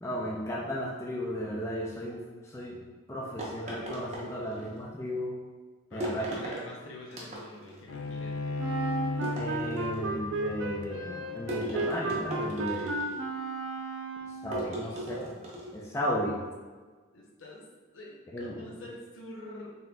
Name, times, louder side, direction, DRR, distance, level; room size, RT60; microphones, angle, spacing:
voice 1, 0.0-2.8 3.1-5.4 5.9-6.2 9.4-12.9 14.4-15.4 15.7-16.4 18.3-18.6, equal, 15° left, -4 dB, 0.4 m, -34 dB
sound 1, 3.4-4.8 6.0-6.7 7.1-7.8 9.2-10.1 11.5-13.3 14.5-15.8, equal, 35° right, 0.7 m, -37 dB
voice 2, 4.4-4.8 5.9-8.6 14.6-15.0 17.1-17.7 17.9-19.8, left 1 dB, 70° left, -2 dB, 0.7 m, -46 dB
Bowed string instrument, 7.9-13.2, left 2 dB, 90° left, 0.4 m, -37 dB
Wind instrument woodwind instrument, 8.6-14.5, right 3 dB, 65° right, 0.4 m, -34 dB
4.1 x 3.6 x 2.2 m, 1.4 s
head